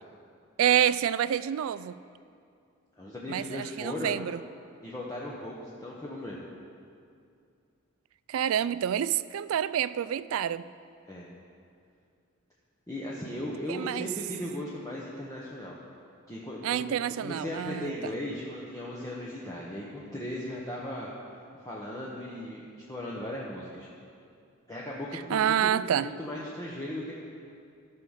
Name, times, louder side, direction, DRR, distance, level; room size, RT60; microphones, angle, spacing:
voice 1, 0.6-1.9 3.3-4.4 8.3-10.6 13.7-14.1 16.6-17.9 25.3-26.1, right 9 dB, 80° right, 0.3 m, -27 dB
voice 2, 3.0-4.2 4.8-6.5 11.1-11.3 12.9-15.8 16.3-16.8 17.2-21.1 21.6-23.9 24.7-25.7 26.0-27.1, left 1 dB, 15° left, 1.0 m, -37 dB
14.0 x 6.3 x 5.7 m
head